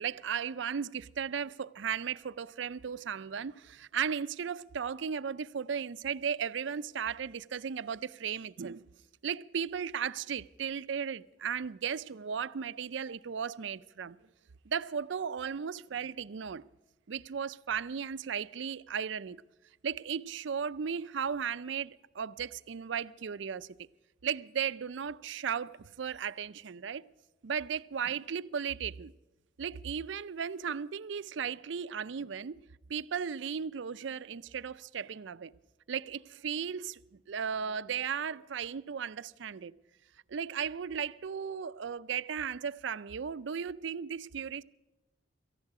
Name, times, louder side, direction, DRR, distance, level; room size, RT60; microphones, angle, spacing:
voice 1, 0.0-8.9 9.2-14.2 14.7-16.6 17.1-19.4 19.8-23.8 24.2-27.1 27.4-29.1 29.6-35.5 35.9-39.8 40.3-44.6, right 7 dB, 70° right, 0.5 m, -36 dB
18.0 x 14.5 x 4.8 m
head